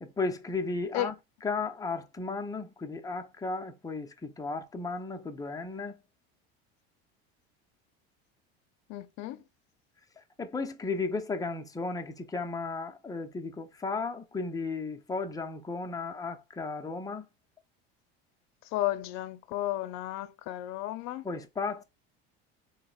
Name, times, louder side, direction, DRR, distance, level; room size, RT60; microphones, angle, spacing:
voice 1, 0.0-1.2 1.4-6.0 10.4-17.3 21.2-21.8, left 3 dB, 10° left, 0.6 m, -34 dB
voice 2, 8.9-9.4 18.7-21.2, left 14 dB, 65° left, 0.6 m, -33 dB
4.0 x 2.1 x 3.9 m
supercardioid pair, 105°, 30 cm